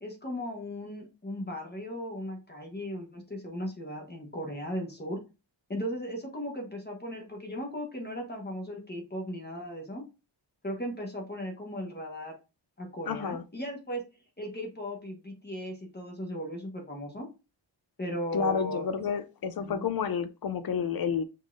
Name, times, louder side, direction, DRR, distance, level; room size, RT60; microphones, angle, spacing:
voice 1, 0.0-5.2 5.7-10.0 10.6-12.4 12.8-14.0 14.4-17.3 18.0-18.8 19.6-19.9, equal, 20° left, 1.1 m, -37 dB
voice 2, 13.1-13.4 18.3-21.2, left 7 dB, 55° left, 0.5 m, -30 dB
5.3 x 3.6 x 2.5 m
wide cardioid pair, 155°, 45 cm